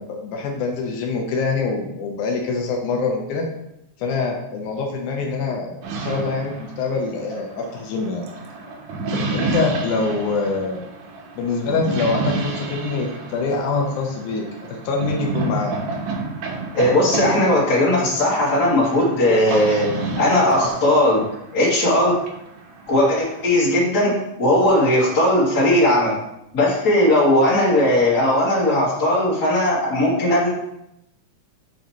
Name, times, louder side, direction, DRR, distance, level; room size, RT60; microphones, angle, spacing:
voice 1, 0.0-3.5 4.0-8.3 9.1-10.8 11.4-15.7, left 4 dB, 85° left, 1 dB, 2.3 m, -25 dB
sound 1, 5.8-23.5, right 3 dB, 75° right, 2.1 m, -30 dB
voice 2, 16.7-19.9 20.2-21.2 21.5-22.1 22.9-24.1 24.4-26.1 26.5-30.5, left 1 dB, 35° left, -7 dB, 2.8 m, -18 dB
7.7 x 5.4 x 2.9 m, 0.83 s
omnidirectional pair, 3.4 m